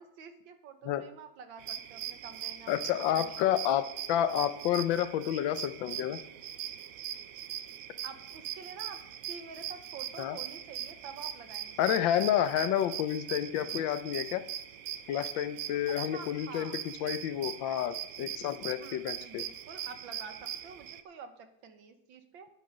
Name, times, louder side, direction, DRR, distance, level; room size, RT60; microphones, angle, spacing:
voice 1, 0.0-3.5 8.0-9.0 9.3-11.9 15.9-16.7 18.8-22.5, right 5 dB, 85° right, 7 dB, 1.9 m, -48 dB
sound 1, 1.6-21.0, right 10 dB, 70° right, 0.8 m, -41 dB
voice 2, 2.7-6.2 10.2-10.4 11.8-14.4 15.1-19.4, left 11 dB, 80° left, 12 dB, 1.4 m, -30 dB
10.5 x 9.2 x 5.3 m, 0.78 s
omnidirectional pair, 2.1 m